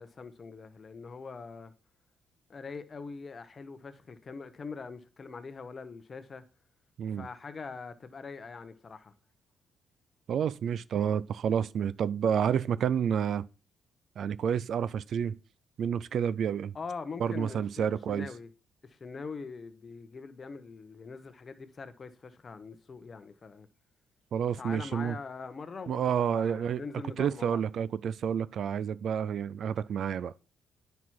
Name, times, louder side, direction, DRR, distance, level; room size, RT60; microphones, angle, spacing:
voice 1, 0.0-1.7 2.5-6.4 7.1-9.1 16.7-18.5 18.8-23.7 24.6-27.6, left 4 dB, 40° left, 1.1 m, -43 dB
voice 2, 10.3-13.5 14.2-15.4 15.8-16.7 17.2-18.3 24.3-25.2 25.9-26.8 27.2-30.3, right 8 dB, 65° right, 0.4 m, -29 dB
9.4 x 5.8 x 4.7 m
cardioid pair, 90°, 0 cm